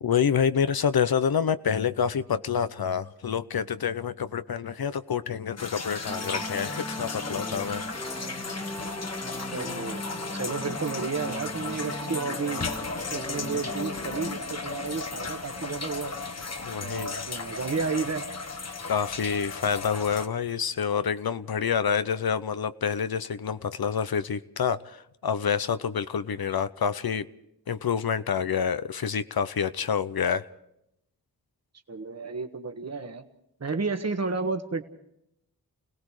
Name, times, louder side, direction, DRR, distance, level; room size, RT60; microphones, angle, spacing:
voice 1, 0.0-7.8 9.4-9.5 16.6-17.2 18.8-25.0 25.2-27.2 27.7-30.4, left 7 dB, 80° left, 13 dB, 0.8 m, -27 dB
sound 1, 5.6-20.3, left 3 dB, 45° left, 1.3 m, -35 dB
sound 2, 6.1-14.4, left 1 dB, 10° left, 1.5 m, -38 dB
voice 2, 9.5-12.6 13.0-16.1 16.8-18.3 31.9-33.2 33.6-34.8, right 4 dB, 45° right, 6 dB, 1.5 m, -32 dB
29.0 x 18.0 x 4.9 m, 0.80 s
wide cardioid pair, 90°, 36 cm